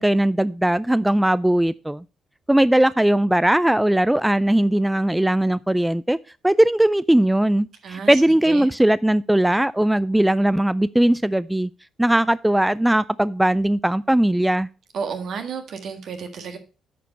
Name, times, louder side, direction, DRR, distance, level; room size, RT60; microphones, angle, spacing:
voice 1, 0.0-2.0 2.5-6.2 6.4-11.7 12.0-14.7, right 1 dB, 10° right, 0.3 m, -19 dB
voice 2, 7.8-8.2 8.5-8.7 14.9-16.6, right 6 dB, 70° right, 1.7 m, -31 dB
9.1 x 5.1 x 5.4 m
supercardioid pair, 60°, 0 cm